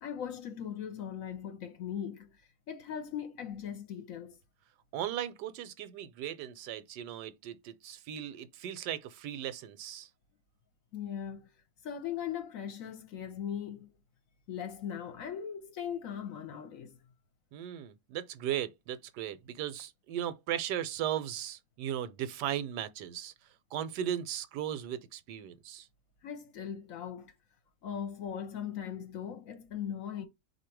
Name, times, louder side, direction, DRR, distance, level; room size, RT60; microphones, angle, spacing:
voice 1, 0.0-2.3 2.7-4.4 10.9-11.5 11.8-13.9 14.5-17.0 26.2-27.3 27.8-30.2, left 8 dB, 65° left, 1.0 m, -39 dB
voice 2, 4.9-10.1 17.5-23.3 23.7-25.9, right 10 dB, 85° right, 1.2 m, -37 dB
4.1 x 2.7 x 4.5 m
omnidirectional pair, 1.8 m